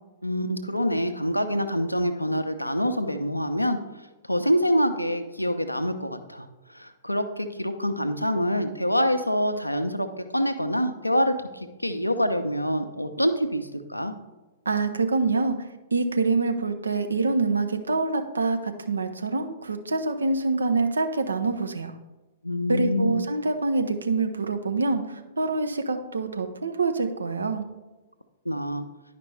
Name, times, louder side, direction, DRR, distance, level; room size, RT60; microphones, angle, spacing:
voice 1, 0.2-3.8 4.3-6.5 6.7-10.1 10.3-14.1 22.4-23.2 28.4-28.8, equal, 90° left, 8 dB, 0.6 m, -26 dB
voice 2, 14.7-21.9 22.7-27.6, right 3 dB, 70° right, 7 dB, 0.7 m, -26 dB
10.5 x 5.1 x 3.3 m, 1.1 s
figure-of-eight pair, 110°, 0 cm